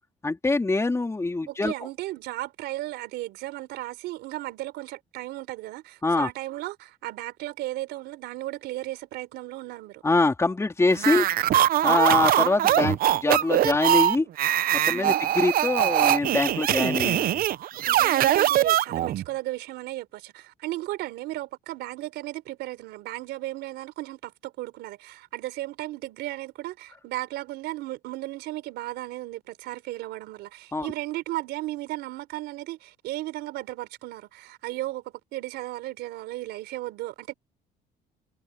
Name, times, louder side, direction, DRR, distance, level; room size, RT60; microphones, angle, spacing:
voice 1, 0.2-1.7 6.0-6.3 10.0-11.3 11.8-14.3 14.9-17.4 18.2-18.4 30.7-30.9, left 3 dB, 15° left, 3.6 m, -24 dB
voice 2, 1.5-10.0 11.2-11.5 14.9-15.2 17.8-37.3, right 17 dB, 85° right, 4.1 m, -35 dB
sound 1, 11.0-19.2, right 12 dB, 60° right, 0.7 m, -22 dB
cardioid pair, 110°, 17 cm